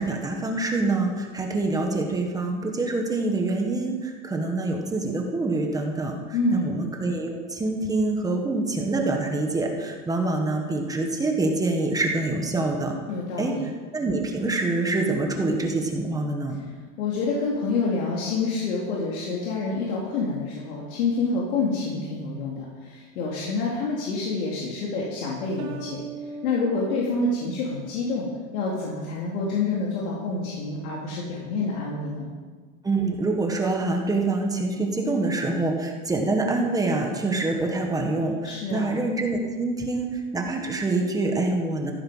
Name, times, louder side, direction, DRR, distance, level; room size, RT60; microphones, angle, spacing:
voice 1, 0.0-12.9 13.4-13.5 13.9-16.6 32.8-41.9, right 2 dB, 10° right, 2 dB, 1.5 m, -26 dB
voice 2, 6.3-6.7 13.1-13.6 17.0-26.0 26.4-28.3 28.5-32.3 38.4-39.0, left 3 dB, 70° left, -4 dB, 3.9 m, -27 dB
sound 1, 25.6-28.2, right 3 dB, 70° right, 3.2 m, -40 dB
15.5 x 13.5 x 5.6 m, 1.5 s
supercardioid pair, 160°, 43 cm